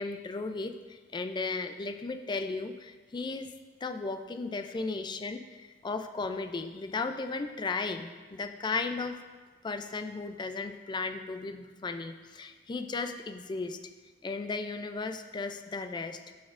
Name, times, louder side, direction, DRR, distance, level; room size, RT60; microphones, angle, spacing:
voice 1, 0.0-3.5 3.8-9.2 9.6-13.8 14.2-16.3, left 3 dB, 25° left, 8 dB, 0.3 m, -35 dB
12.5 x 4.2 x 2.5 m, 1.3 s
head